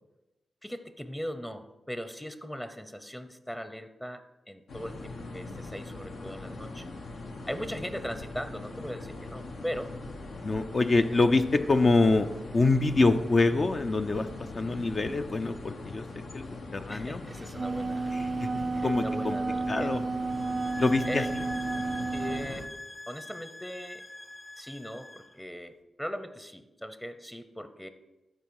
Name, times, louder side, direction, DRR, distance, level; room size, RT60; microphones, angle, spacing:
voice 1, 0.6-6.9 7.5-10.0 16.9-18.1 18.7-19.9 21.1-21.3 22.1-22.7 23.1-24.0 24.6-27.9, equal, 10° left, 10 dB, 0.7 m, -39 dB
sound 1, 4.7-22.7, left 2 dB, 75° left, 1.0 m, -41 dB
voice 2, 10.4-14.3 14.5-16.0 16.3-16.4 16.7-17.2 18.1-18.2 18.8-19.4 19.7-20.0 20.8-21.4, left 3 dB, 50° left, 7 dB, 0.5 m, -25 dB
Wind instrument woodwind instrument, 17.3-22.5, right 3 dB, 45° right, 0.3 m, -32 dB
sound 2, 20.3-25.3, left 2 dB, 30° left, 1.2 m, -44 dB
13.0 x 4.7 x 4.7 m, 1.0 s
supercardioid pair, 45°, 0 cm